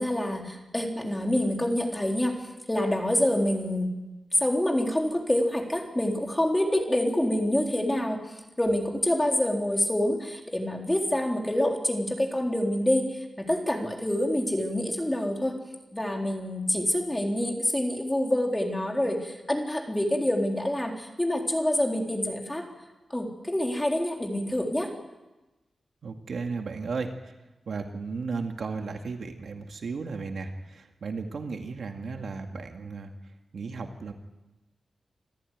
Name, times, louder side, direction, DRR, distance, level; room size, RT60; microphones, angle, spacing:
voice 1, 0.0-3.9 4.4-8.2 8.6-15.5 15.9-22.7 23.1-24.9, left 1 dB, 10° left, 1 dB, 3.8 m, -27 dB
voice 2, 26.0-27.1 27.7-33.1 33.5-34.1, right 4 dB, 70° right, 4 dB, 2.2 m, -34 dB
26.5 x 14.5 x 9.4 m, 1.1 s
wide cardioid pair, 115°, 0 cm